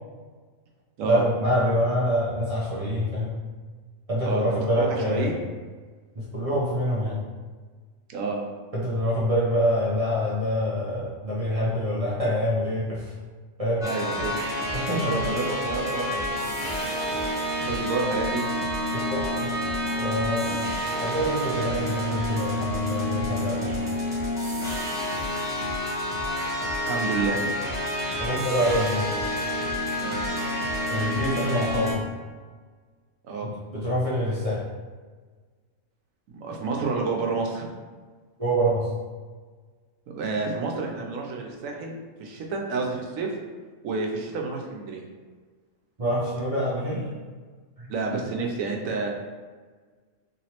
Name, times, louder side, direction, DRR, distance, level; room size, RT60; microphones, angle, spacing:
voice 1, 1.0-3.3 4.1-5.3 6.2-7.2 8.7-13.1 13.6-13.9 14.7-15.2 18.9-19.5 20.0-20.5 21.0-23.8 28.2-29.1 30.8-32.0 33.4-34.6 38.4-38.9 46.0-47.1 47.8-47.9, equal, 40° right, -7 dB, 0.5 m, -26 dB
voice 2, 4.2-5.4 8.1-8.4 13.8-14.3 14.8-16.9 17.7-18.4 20.4-20.7 23.7-23.8 26.9-27.4 30.0-30.2 33.3-33.5 36.3-37.7 40.1-43.3 43.8-45.0 47.9-49.1, right 4 dB, 75° right, 0 dB, 1.0 m, -29 dB
sound 1, 13.8-31.9, left 1 dB, 5° right, 0.6 m, -28 dB
3.1 x 3.0 x 2.8 m, 1.4 s
omnidirectional pair, 1.5 m